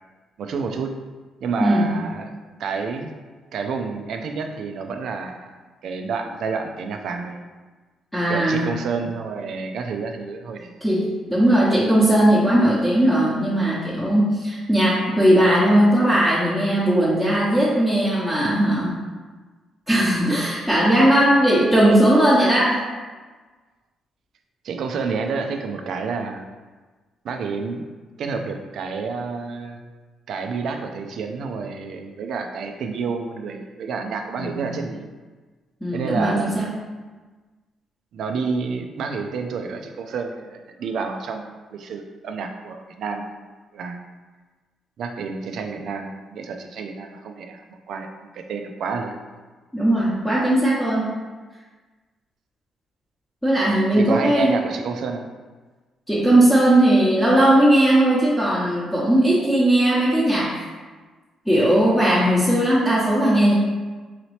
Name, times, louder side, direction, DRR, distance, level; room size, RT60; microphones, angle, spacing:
voice 1, 0.4-0.9 1.4-2.3 2.6-3.1 3.5-5.5 5.8-7.4 8.3-10.8 24.6-26.4 27.2-27.8 28.2-29.8 30.3-35.1 35.9-36.7 38.1-43.5 43.7-44.0 45.0-47.6 47.9-49.2 53.9-55.3, right 5 dB, 70° right, 5 dB, 0.4 m, -29 dB
voice 2, 1.6-1.9 8.1-8.7 10.8-19.0 19.9-22.8 34.4-34.7 35.8-36.7 49.7-51.1 53.4-54.5 56.1-60.6 61.5-63.5, right 1 dB, 5° left, -9 dB, 0.8 m, -18 dB
3.9 x 2.8 x 3.1 m, 1.3 s
cardioid pair, 90°, 0 cm